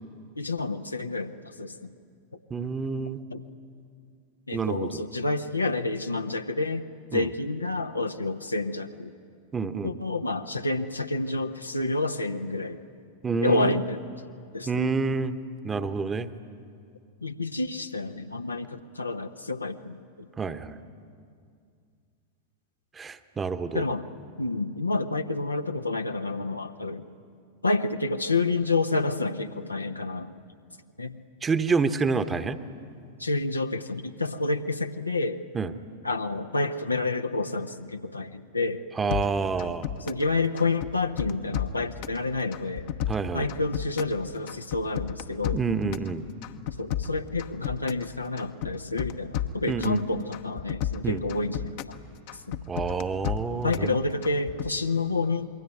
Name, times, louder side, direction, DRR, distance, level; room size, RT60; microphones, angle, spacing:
voice 1, 0.4-1.9 3.3-3.4 4.5-9.1 9.8-12.8 13.4-14.0 14.5-14.9 17.2-20.3 23.7-24.0 24.4-27.0 27.6-30.3 31.0-31.2 33.2-35.4 36.0-38.8 40.1-42.9 43.3-45.6 46.8-51.8 52.5-52.6 53.5-55.5, left 3 dB, 80° left, 7 dB, 1.0 m, -29 dB
voice 2, 2.5-3.2 4.5-5.0 7.1-7.3 9.5-9.9 13.2-13.8 14.7-15.3 15.6-16.3 20.4-20.8 23.0-23.8 31.4-32.6 35.5-35.7 39.0-39.9 43.1-43.5 45.5-46.3 49.7-50.0 51.0-51.2 52.7-54.0, right 4 dB, 15° right, 11 dB, 1.1 m, -28 dB
sound 1, 39.1-40.3 40.6-42.2 42.5-44.2 44.5-46.1 46.4-48.1 48.4-50.0 50.3-52.0 52.3-53.9 54.2-54.7, left 11 dB, 50° left, 1.0 m, -32 dB
27.0 x 22.0 x 9.6 m, 2.3 s
figure-of-eight pair, 90°, 0 cm